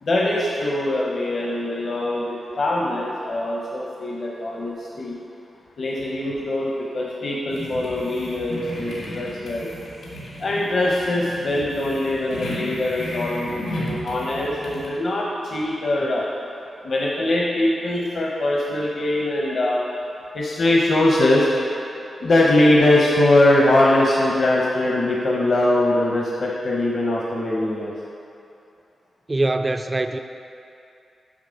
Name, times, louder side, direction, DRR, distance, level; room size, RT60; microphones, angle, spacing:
voice 1, 0.0-5.2 5.8-9.7 10.4-16.3 16.8-19.8 20.3-21.5 22.2-27.9, left 1 dB, 45° left, -3 dB, 0.8 m, -22 dB
sound 1, 7.5-14.9, equal, 75° left, 2.0 m, -34 dB
voice 2, 29.3-30.2, right 2 dB, 20° right, 7 dB, 0.3 m, -23 dB
7.4 x 6.1 x 5.1 m, 2.7 s
wide cardioid pair, 160°, 0 cm